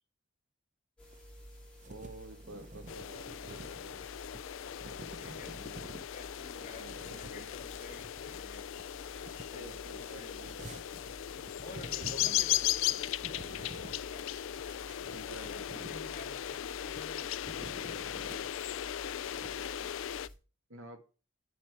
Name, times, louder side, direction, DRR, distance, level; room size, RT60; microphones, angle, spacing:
sound 1, 1.0-20.3, equal, 5° left, 3.9 m, -53 dB
sound 2, 1.0-19.6, right 2 dB, 35° right, 0.8 m, -51 dB
voice 1, 1.9-4.0 6.6-7.5 9.5-10.5 15.1-15.9 20.7-21.0, right 2 dB, 75° right, 5 dB, 2.1 m, -50 dB
sound 3, 2.9-20.3, left 12 dB, 65° left, 0.3 m, -37 dB
voice 2, 5.1-5.8 6.1-8.6 9.5-10.6 11.6-14.3 15.4-18.5 19.4-19.9, left 1 dB, 35° left, 1 dB, 2.5 m, -52 dB
8.0 x 7.5 x 4.6 m, 0.33 s
head